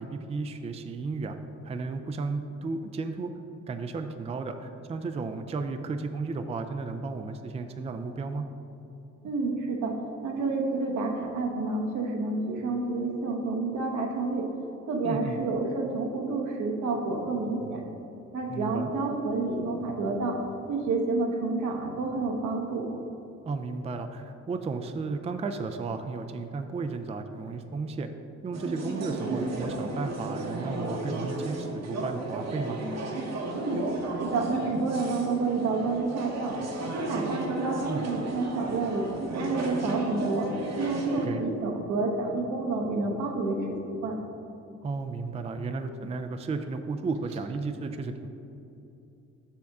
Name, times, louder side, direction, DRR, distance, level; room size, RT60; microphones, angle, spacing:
voice 1, 0.0-1.4 1.6-3.3 3.7-8.5 15.0-15.4 18.5-18.9 23.4-28.1 28.4-32.8 37.9-38.1 41.2-41.4 44.8-48.3, right 4 dB, 20° right, 7 dB, 0.4 m, -34 dB
voice 2, 9.2-10.0 10.2-14.5 14.9-17.8 18.3-20.4 20.7-22.9 33.5-33.8 34.2-36.6 36.9-39.1 39.3-43.8 44.0-44.2, right 3 dB, 80° right, 1 dB, 1.1 m, -29 dB
sound 1, 28.5-41.3, right 2 dB, 60° right, 1.0 m, -34 dB
7.0 x 6.2 x 3.5 m, 2.9 s
cardioid pair, 90°, 30 cm